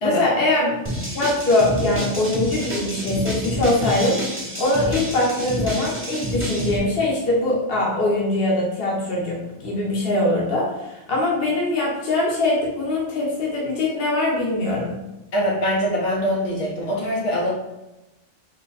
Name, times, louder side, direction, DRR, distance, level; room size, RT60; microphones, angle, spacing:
voice 1, 0.0-0.8 1.1-4.2 4.6-15.0, left 2 dB, 55° left, -3 dB, 1.3 m, -22 dB
sound 1, 0.8-6.8, equal, 10° right, 0.8 m, -28 dB
voice 2, 15.3-17.5, equal, 75° left, -4 dB, 1.4 m, -23 dB
3.9 x 3.1 x 4.1 m, 0.98 s
omnidirectional pair, 1.2 m